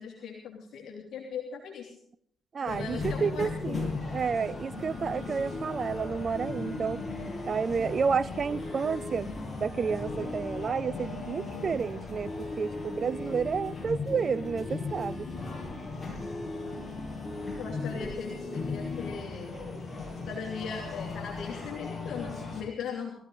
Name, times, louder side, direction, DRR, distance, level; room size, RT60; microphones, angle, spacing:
voice 1, 0.0-1.9 2.7-3.8 17.6-19.6 20.3-23.1, left 6 dB, 65° left, 3.0 m, -39 dB
voice 2, 2.5-7.0 7.5-9.3 9.6-15.3, right 6 dB, 50° right, 0.5 m, -30 dB
sound 1, 2.7-22.6, left 3 dB, 30° left, 7.9 m, -37 dB
21.0 x 15.0 x 4.0 m
hypercardioid pair, 50°, 0 cm